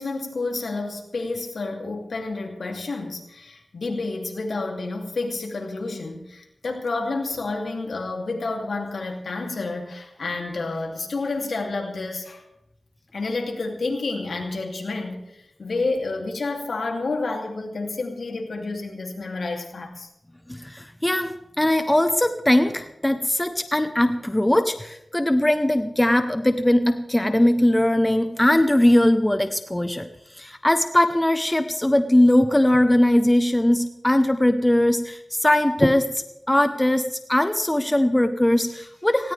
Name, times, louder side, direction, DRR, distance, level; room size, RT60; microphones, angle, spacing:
voice 1, 0.0-12.4 13.1-20.1, left 3 dB, 75° left, 2 dB, 3.0 m, -29 dB
voice 2, 20.5-30.1 30.3-36.1 36.5-39.3, left 1 dB, 15° left, 8 dB, 1.0 m, -20 dB
18.5 x 17.0 x 3.5 m, 0.85 s
wide cardioid pair, 60°, 0 cm